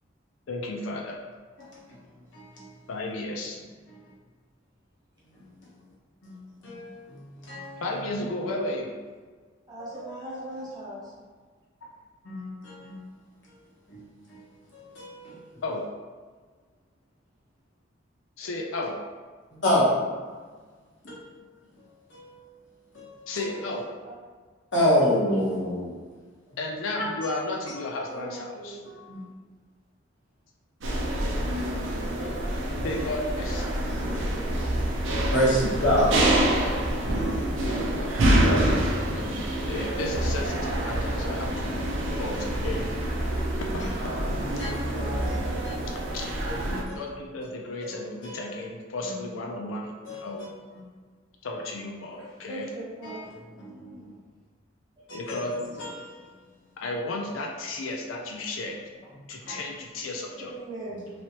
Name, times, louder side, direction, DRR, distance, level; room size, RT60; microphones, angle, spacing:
voice 1, 0.5-1.2 2.9-3.6 7.8-9.0 15.6-15.9 18.4-19.0 23.3-23.8 26.6-28.7 32.8-33.8 38.5-38.7 39.1-41.8 42.2-42.9 44.7-45.5 46.1-46.3 46.8-49.9 50.2-50.5 51.4-52.7 55.1-55.5 56.8-58.8 59.3-60.5, left 2 dB, 85° left, 0 dB, 0.5 m, -33 dB
voice 2, 1.6-2.7 3.9-4.0 5.3-5.8 6.2-8.4 9.9-10.1 10.3-10.7 12.2-13.1 13.4-13.5 13.9-14.5 14.7-15.6 19.6-20.0 21.0-21.3 21.8-22.7 22.9-23.5 24.7-26.0 27.2-27.4 28.9-29.2 32.2-33.0 34.0-34.7 35.3-36.5 37.1-37.4 37.6-38.5 42.1-42.4 43.7-43.9 44.2-45.9 46.5-47.0 47.8-47.9 48.2-48.5 49.0-49.3 50.0-50.8 53.0-53.2 53.6-54.2 55.1-56.3, equal, 65° left, -6 dB, 1.1 m, -30 dB
voice 3, 9.7-11.1 18.4-18.5 24.0-24.1 28.1-28.9 33.6-34.3 52.1-53.3 55.0-55.1 60.3-61.1, right 1 dB, 20° right, -8 dB, 0.9 m, -40 dB
sound 1, 30.8-46.8, right 1 dB, 75° right, 0.6 m, -27 dB
3.1 x 2.9 x 2.8 m, 1.5 s
head